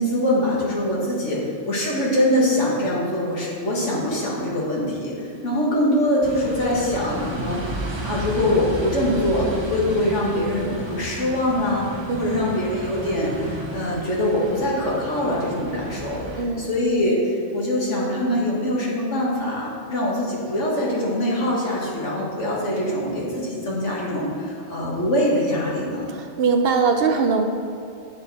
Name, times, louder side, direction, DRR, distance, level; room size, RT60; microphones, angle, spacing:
voice 1, 0.0-1.4 1.7-5.1 5.4-11.9 12.2-26.1, left 1 dB, 85° left, -4 dB, 2.0 m, -23 dB
sound 1, 6.2-16.4, right 1 dB, 30° right, 0.7 m, -33 dB
voice 2, 12.1-12.4 16.4-16.7 26.1-27.4, right 5 dB, 60° right, 5 dB, 0.8 m, -21 dB
8.8 x 6.5 x 4.2 m, 2.5 s
omnidirectional pair, 1.2 m